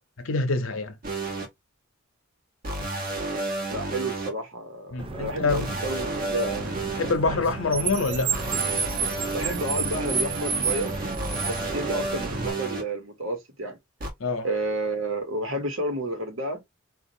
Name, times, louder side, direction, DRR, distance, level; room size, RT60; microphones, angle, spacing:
voice 1, 0.2-1.0 4.9-5.7 7.0-8.4 14.2-14.5, left 3 dB, 70° left, 0.7 m, -26 dB
sound 1, 1.0-1.5 2.6-4.3 5.5-7.1 8.3-12.8 14.0-14.1, right 2 dB, 40° right, 1.0 m, -31 dB
voice 2, 3.7-6.7 9.3-11.0 11.5-13.8 14.4-16.6, right 1 dB, 65° right, 1.1 m, -31 dB
Car, 5.0-12.5, right 5 dB, 25° right, 0.3 m, -31 dB
4.1 x 2.5 x 2.6 m
head